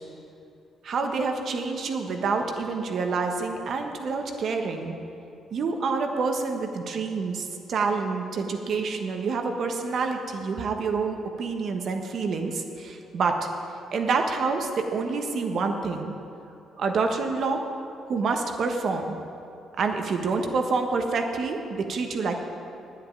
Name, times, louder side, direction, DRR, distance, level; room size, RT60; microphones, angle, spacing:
voice 1, 0.8-4.9 5.5-13.5 13.9-16.1 16.8-17.6 18.1-19.1 19.8-22.4, right 4 dB, 60° right, 4 dB, 1.3 m, -27 dB
9.8 x 8.6 x 9.3 m, 2.7 s
cardioid pair, 90°, 0 cm